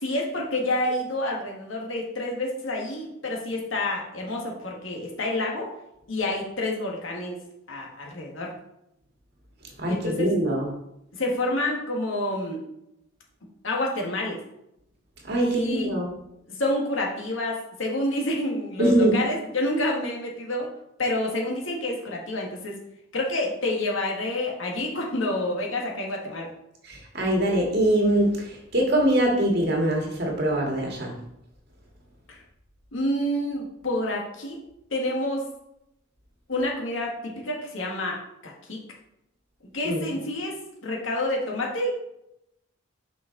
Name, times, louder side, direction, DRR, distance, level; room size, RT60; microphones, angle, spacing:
voice 1, 0.0-5.7 6.1-7.4 7.7-8.5 9.9-10.3 11.1-12.6 13.6-14.4 15.4-15.9 16.5-20.7 21.0-22.8 23.1-26.5 32.3-32.4 32.9-34.6 34.9-35.5 36.5-38.8 39.7-42.0, left 1 dB, 75° left, 0 dB, 1.7 m, -28 dB
voice 2, 9.8-10.7 15.2-16.1 18.8-19.2 26.8-31.1 39.8-40.1, right 1 dB, 55° right, -1 dB, 1.8 m, -23 dB
5.9 x 5.6 x 3.9 m, 0.82 s
head